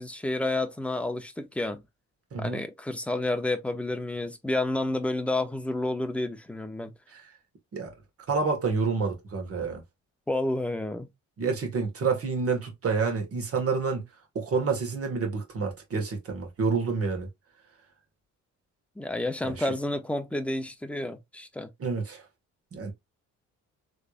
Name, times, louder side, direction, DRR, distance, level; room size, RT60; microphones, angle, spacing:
voice 1, 0.0-1.8 2.4-6.9 10.3-11.1 19.0-21.7, left 2 dB, 5° left, 0.7 m, -30 dB
voice 2, 2.3-2.6 7.1-7.2 7.7-7.9 8.3-9.8 11.4-14.1 14.3-17.3 19.6-19.7 21.8-22.2 22.7-22.9, right 4 dB, 50° right, 1.7 m, -28 dB
3.4 x 3.3 x 2.4 m
cardioid pair, 90°, 30 cm